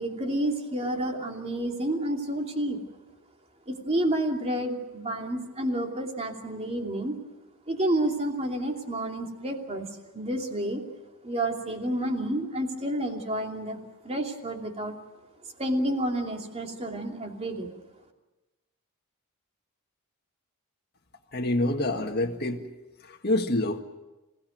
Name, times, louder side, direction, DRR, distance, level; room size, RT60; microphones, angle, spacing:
voice 1, 0.0-2.8 3.7-7.2 7.7-9.9 10.1-10.8 11.2-13.8 14.0-14.9 15.6-17.7, right 1 dB, 30° right, 2 dB, 2.9 m, -29 dB
voice 2, 21.3-22.6 23.1-23.8, left 1 dB, 45° left, 2 dB, 1.8 m, -26 dB
27.5 x 17.0 x 9.3 m, 1.1 s
head